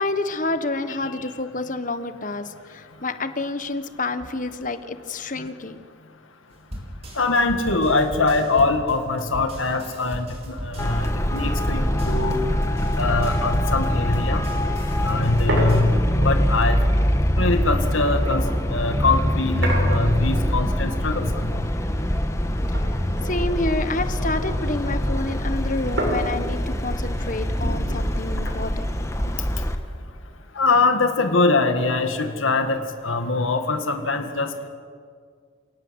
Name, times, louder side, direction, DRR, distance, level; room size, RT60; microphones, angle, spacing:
voice 1, 0.0-5.8 22.7-22.8 23.2-29.0, left 2 dB, 40° left, 10 dB, 1.4 m, -28 dB
sound 1, 6.7-15.8, equal, 30° right, 4.4 m, -36 dB
voice 2, 7.2-12.4 13.0-14.4 15.0-16.0 16.2-16.8 17.4-18.4 18.7-21.6 30.6-34.7, left 3 dB, 85° left, 6 dB, 2.0 m, -23 dB
Traffic noise roadway noise, 10.8-29.8, equal, 15° left, 1.3 m, -24 dB
sound 2, 13.9-14.0 14.3-14.4 14.7-19.0 19.6-20.8 21.1-22.5 22.7-24.5 24.8-30.0, right 1 dB, 65° right, 7.2 m, -33 dB
29.0 x 18.5 x 8.1 m, 2.1 s
head